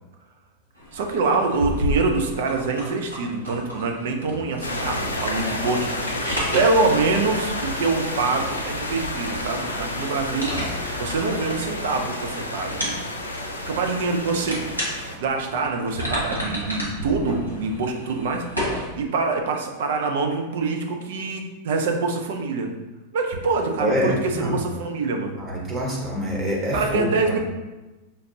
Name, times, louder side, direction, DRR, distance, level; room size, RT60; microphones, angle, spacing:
sound 1, 0.7-18.8, equal, 90° right, 1.1 m, -33 dB
voice 1, 0.9-5.9 6.5-10.5 11.0-12.9 13.7-14.8 15.2-18.5 19.0-22.7 23.1-25.4 26.7-27.4, right 3 dB, 55° right, 3 dB, 0.5 m, -25 dB
sound 2, 4.6-15.2, left 1 dB, 75° left, 0.5 m, -30 dB
voice 2, 23.8-24.6 25.4-27.4, equal, 25° right, -3 dB, 1.1 m, -26 dB
5.1 x 2.5 x 2.8 m, 1.1 s
figure-of-eight pair, 90°, 0 cm